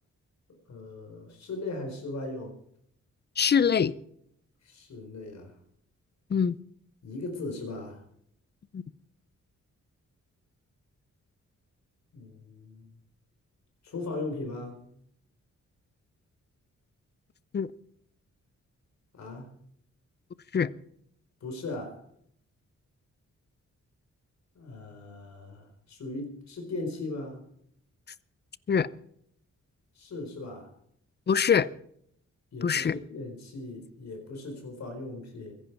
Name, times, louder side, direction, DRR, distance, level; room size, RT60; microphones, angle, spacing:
voice 1, 0.7-2.5 4.6-5.5 7.0-8.0 12.1-12.9 13.8-14.8 19.1-19.5 21.4-22.0 24.5-27.4 29.9-30.7 32.5-35.5, left 2 dB, 65° left, 4.3 m, -38 dB
voice 2, 3.4-3.9 6.3-6.6 8.7-8.8 17.5-17.7 20.5-20.7 28.7-28.9 31.3-31.7 32.6-33.0, left 7 dB, 35° left, 0.5 m, -23 dB
22.0 x 11.0 x 4.7 m
wide cardioid pair, 155°, 30 cm